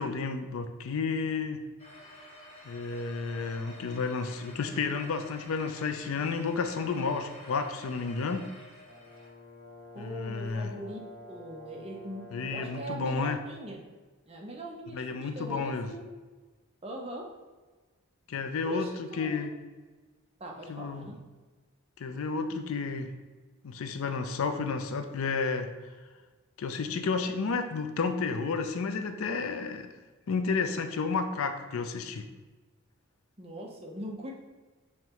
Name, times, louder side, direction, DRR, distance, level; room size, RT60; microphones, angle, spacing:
voice 1, 0.0-1.6 2.6-8.5 10.0-10.7 12.3-13.4 14.9-15.9 18.3-18.9 19.2-19.5 20.7-21.1 22.0-23.1 23.6-25.7 26.6-29.9 30.3-32.3, left 4 dB, 75° left, 8 dB, 0.4 m, -31 dB
sound 1, 1.8-9.3, left 1 dB, 30° left, 1.2 m, -50 dB
Brass instrument, 8.8-13.0, left 2 dB, 60° left, 0.9 m, -50 dB
voice 2, 9.9-11.0 11.3-13.8 14.3-16.0 16.8-17.3 18.6-19.5 20.4-21.2 33.4-34.3, right 1 dB, 30° right, 0 dB, 0.6 m, -41 dB
5.5 x 3.2 x 3.0 m, 1.3 s
head